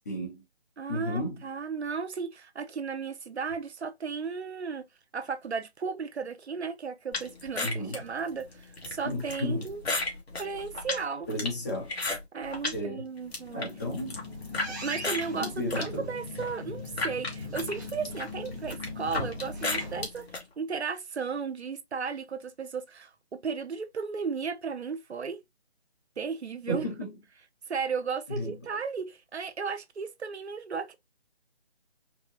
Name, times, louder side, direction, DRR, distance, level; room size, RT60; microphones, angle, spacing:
voice 1, 0.1-0.4 0.9-1.4 7.6-8.0 9.0-9.7 11.3-11.9 12.7-13.0 13.5-14.2 15.3-16.1 26.7-27.1 28.3-28.6, left 1 dB, 15° left, 0.8 m, -33 dB
voice 2, 0.8-4.9 5.1-9.8 10.4-11.3 12.3-13.7 14.8-25.4 26.2-26.8 27.7-30.9, right 5 dB, 80° right, 0.8 m, -35 dB
sound 1, 7.1-12.8 13.2-14.7 15.0-20.4, left 2 dB, 70° left, 1.7 m, -34 dB
sound 2, 13.5-20.0, left 2 dB, 15° right, 0.9 m, -39 dB
4.6 x 2.2 x 2.7 m
figure-of-eight pair, 160°, 33 cm